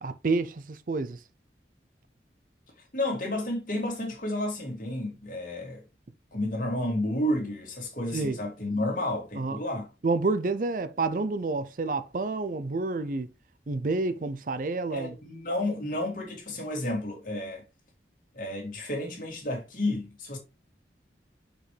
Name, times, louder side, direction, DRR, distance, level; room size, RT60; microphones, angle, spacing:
voice 1, 0.0-1.2 8.1-8.4 9.4-9.6 10.0-13.3 13.7-15.1, right 3 dB, 50° right, 0.5 m, -29 dB
voice 2, 2.9-5.8 6.3-9.9 14.9-17.6 18.3-20.4, left 1 dB, 50° left, 2.5 m, -31 dB
6.2 x 5.1 x 3.3 m
head